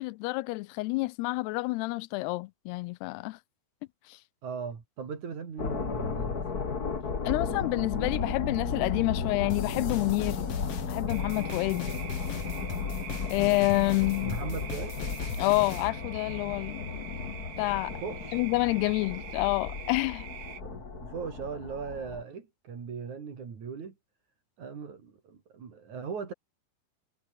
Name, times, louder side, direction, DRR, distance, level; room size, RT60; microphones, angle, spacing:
voice 1, 0.0-3.4 7.3-10.5 10.9-11.9 13.3-14.4 15.4-18.0 18.3-20.3, left 22 dB, 85° left, 2.6 m, -28 dB
voice 2, 4.4-6.5 14.2-15.0 18.0-18.4 20.6-23.9 24.6-26.3, right 6 dB, 50° right, 4.6 m, -39 dB
sound 1, 5.6-22.2, left 5 dB, 30° left, 1.9 m, -35 dB
sound 2, 9.5-15.9, left 8 dB, 50° left, 2.2 m, -39 dB
sound 3, 11.1-20.6, right 10 dB, 75° right, 4.3 m, -45 dB
omnidirectional pair, 4.7 m